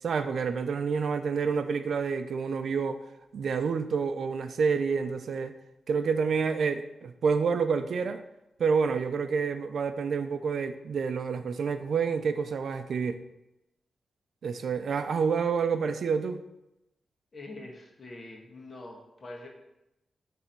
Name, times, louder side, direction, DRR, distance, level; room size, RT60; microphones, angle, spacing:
voice 1, 0.0-3.0 3.3-5.5 5.9-8.2 8.6-13.2 14.4-16.4, right 5 dB, 70° right, 10 dB, 0.5 m, -28 dB
voice 2, 17.3-19.5, left 2 dB, 40° left, 0 dB, 1.4 m, -44 dB
9.7 x 3.4 x 4.4 m, 0.92 s
wide cardioid pair, 140°, 0 cm